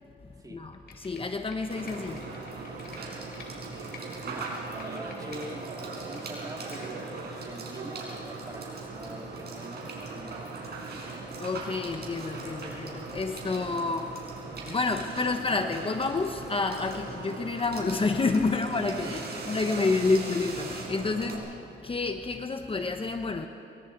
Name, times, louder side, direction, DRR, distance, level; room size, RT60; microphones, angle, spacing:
voice 1, 0.5-2.5 2.9-3.6 11.4-23.5, left 3 dB, 25° left, 6 dB, 1.1 m, -29 dB
Computer keyboard, 0.7-3.5 3.8-5.5 5.8-7.2 7.6-7.7, left 5 dB, 50° left, 4.2 m, -50 dB
Water / Water tap faucet / Sink (filling or washing), 1.7-21.4, right 3 dB, 55° right, 5.6 m, -39 dB
voice 2, 3.6-11.0 19.0-19.9, right 1 dB, 20° right, 2 dB, 2.5 m, -45 dB
24.0 x 23.5 x 4.7 m, 2.7 s
cardioid pair, 90°, 20 cm